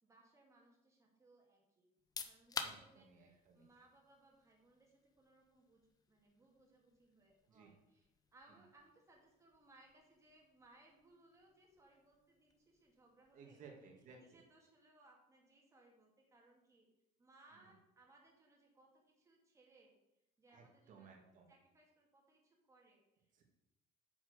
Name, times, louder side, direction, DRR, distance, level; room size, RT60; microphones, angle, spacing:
voice 1, 0.0-1.9 2.2-13.6 14.2-16.9 17.2-20.0 20.4-21.1 21.5-23.3, right 2 dB, 20° right, 0 dB, 2.3 m, -68 dB
sound 1, 1.9-14.6, left 5 dB, 20° left, 0.7 m, -54 dB
voice 2, 2.6-3.7 7.5-7.7 13.3-14.4 20.5-21.5 23.3-23.4, right 5 dB, 50° right, 1 dB, 2.0 m, -59 dB
9.1 x 6.1 x 6.6 m, 0.87 s
cardioid pair, 175°, 17 cm